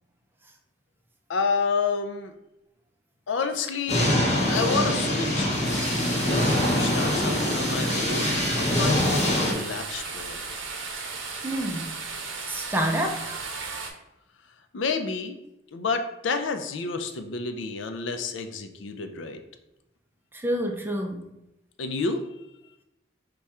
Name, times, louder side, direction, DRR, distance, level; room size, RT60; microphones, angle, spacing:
voice 1, 1.3-2.3 3.3-4.2 4.5-10.4 14.7-15.4 15.7-19.4 21.8-22.2, left 4 dB, 75° left, 7 dB, 0.5 m, -30 dB
sound 1, 3.9-9.5, left 1 dB, 35° left, 0.8 m, -24 dB
sound 2, 5.6-13.9, right 4 dB, 85° right, 0.7 m, -35 dB
voice 2, 11.4-12.0 12.5-13.4 20.3-21.3, right 1 dB, 10° right, 3 dB, 0.4 m, -28 dB
4.8 x 2.3 x 4.2 m, 0.89 s
head